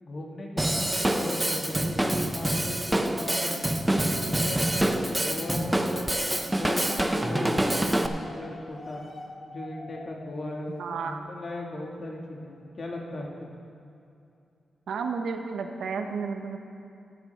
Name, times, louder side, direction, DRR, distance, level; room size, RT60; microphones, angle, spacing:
voice 1, 0.0-3.6 3.9-9.0 9.4-13.5, left 1 dB, 45° left, 0 dB, 1.6 m, -37 dB
Drum kit / Drum, 0.6-8.1, right 1 dB, 10° right, 0.5 m, -26 dB
sound 1, 3.1-5.8 6.7-11.2, left 1 dB, 20° left, 1.0 m, -45 dB
voice 2, 10.8-11.2 14.9-16.6, right 5 dB, 85° right, 5 dB, 0.8 m, -32 dB
13.5 x 11.5 x 3.3 m, 2.6 s
wide cardioid pair, 125°, 0 cm